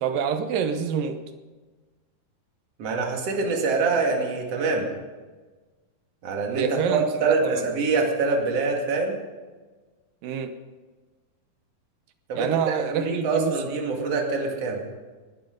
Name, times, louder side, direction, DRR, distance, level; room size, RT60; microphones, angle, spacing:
voice 1, 0.0-1.2 6.5-7.6 10.2-10.5 12.4-13.6, right 7 dB, 75° right, 9 dB, 2.4 m, -27 dB
voice 2, 2.8-4.9 6.2-9.1 12.3-14.8, right 4 dB, 45° right, 1 dB, 3.1 m, -25 dB
19.5 x 12.5 x 5.2 m, 1.3 s
omnidirectional pair, 4.3 m